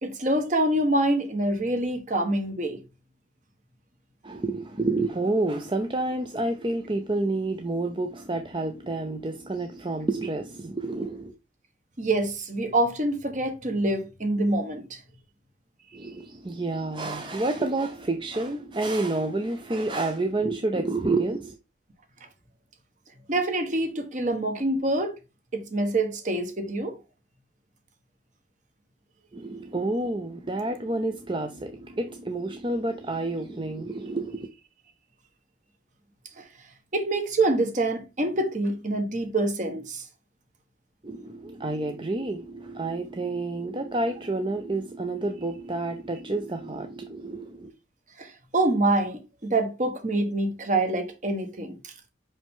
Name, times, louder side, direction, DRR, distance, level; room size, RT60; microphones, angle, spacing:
voice 1, 0.0-2.8 12.0-15.0 23.3-25.1 25.5-27.0 36.4-36.5 36.9-40.0 48.2-51.9, right 2 dB, 45° right, 1.3 m, -26 dB
voice 2, 4.2-11.3 15.9-21.6 29.3-34.5 41.0-47.7, right 2 dB, 25° right, 0.6 m, -29 dB
5.5 x 5.4 x 3.6 m
head